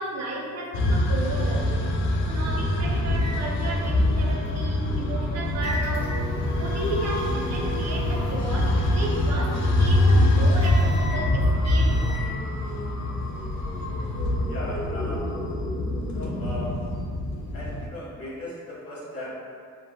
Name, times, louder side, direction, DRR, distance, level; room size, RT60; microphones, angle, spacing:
voice 1, 0.0-6.2 6.6-12.4, right 2 dB, 60° right, -1 dB, 0.5 m, -33 dB
sound 1, 0.7-17.9, left 1 dB, 70° left, 0.4 m, -24 dB
sound 2, 3.1-12.3, equal, 20° left, 0.6 m, -36 dB
voice 2, 14.5-15.3 16.1-16.8 17.5-19.3, left 1 dB, 50° left, -5 dB, 0.9 m, -37 dB
3.3 x 2.0 x 2.2 m, 2.2 s
cardioid pair, 90°, 30 cm